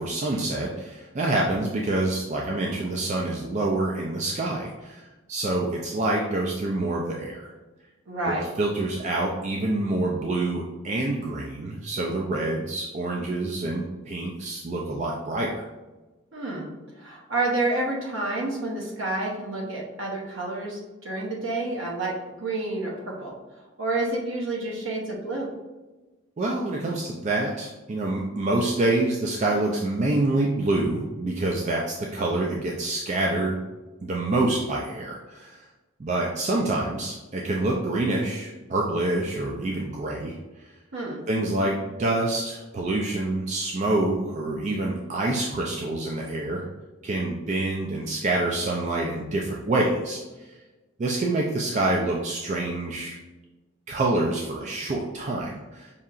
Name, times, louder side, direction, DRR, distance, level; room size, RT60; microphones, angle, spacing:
voice 1, 0.0-7.5 8.3-15.7 26.4-33.6 34.0-35.6 36.0-40.4 41.3-46.7 47.0-50.2 51.0-53.2 53.9-55.9, right 2 dB, 35° right, -2 dB, 0.3 m, -27 dB
voice 2, 8.1-8.5 16.3-16.7 17.0-23.3 23.8-25.5 40.9-41.2, right 2 dB, 65° right, -3 dB, 0.8 m, -29 dB
5.4 x 2.8 x 2.4 m, 1.1 s
head